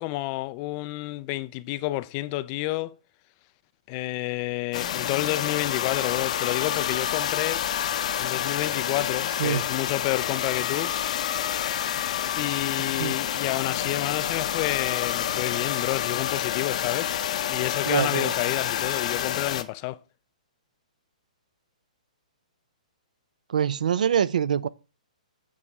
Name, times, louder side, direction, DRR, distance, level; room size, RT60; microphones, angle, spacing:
voice 1, 0.0-2.9 3.9-7.6 8.2-10.9 12.3-17.1 17.5-20.0, left 18 dB, 30° left, 0.3 m, -30 dB
sound 1, 4.7-19.6, left 10 dB, 55° left, 0.7 m, -28 dB
voice 2, 12.8-13.2 17.9-18.3 23.5-24.7, right 8 dB, 75° right, 0.5 m, -25 dB
8.4 x 3.6 x 5.3 m
hypercardioid pair, 145°, 4 cm